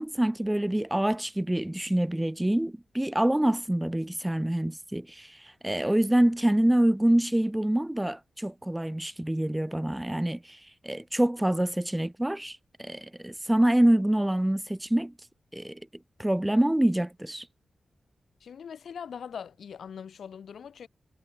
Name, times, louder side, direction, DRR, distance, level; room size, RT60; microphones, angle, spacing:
voice 1, 0.0-15.1 15.5-15.8 16.2-17.5, right 1 dB, 10° right, 0.5 m, -26 dB
voice 2, 18.4-20.9, left 7 dB, 75° left, 3.0 m, -41 dB
wide cardioid pair, 120°, 0 cm